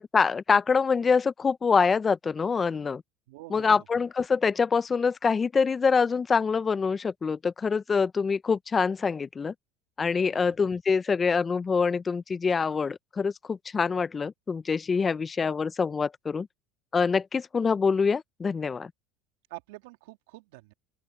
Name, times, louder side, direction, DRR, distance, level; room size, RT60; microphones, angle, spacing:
voice 1, 0.0-3.0 3.5-9.5 10.0-16.5 16.9-18.9, left 5 dB, 30° left, 0.7 m, -25 dB
voice 2, 3.3-3.8 10.3-10.5 19.5-20.7, right 22 dB, 80° right, 3.2 m, -46 dB
open air
supercardioid pair, 85°, 0 cm